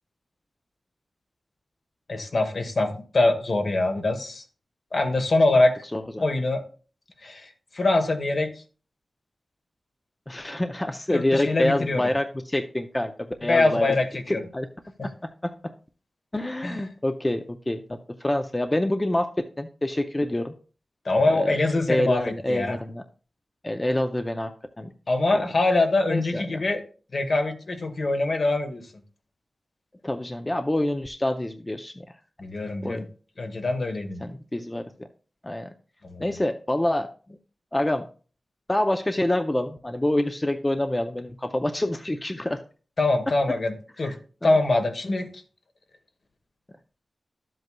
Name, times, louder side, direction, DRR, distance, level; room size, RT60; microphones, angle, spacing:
voice 1, 2.1-4.4 4.9-5.8 6.2-6.7 7.2-8.5 11.1-12.0 13.4-14.4 15.0-15.1 16.6-16.8 21.0-22.8 25.1-26.8 27.1-28.9 32.4-33.1 33.4-34.2 36.1-36.2 43.0-44.1 44.4-45.4, left 2 dB, 55° left, 6 dB, 1.1 m, -24 dB
voice 2, 5.9-6.3 10.3-13.1 13.4-13.9 14.3-14.7 15.0-15.5 16.3-20.5 21.3-21.5 21.9-23.0 23.6-24.5 24.8-24.9 25.3-25.4 26.1-26.6 30.0-32.0 32.8-33.1 34.2-34.8 35.4-35.7 36.2-37.1 37.7-38.1 38.7-42.6 44.0-44.2 44.4-44.5, left 1 dB, 15° left, 6 dB, 0.5 m, -26 dB
12.0 x 7.8 x 2.2 m, 0.39 s
wide cardioid pair, 125°, 0 cm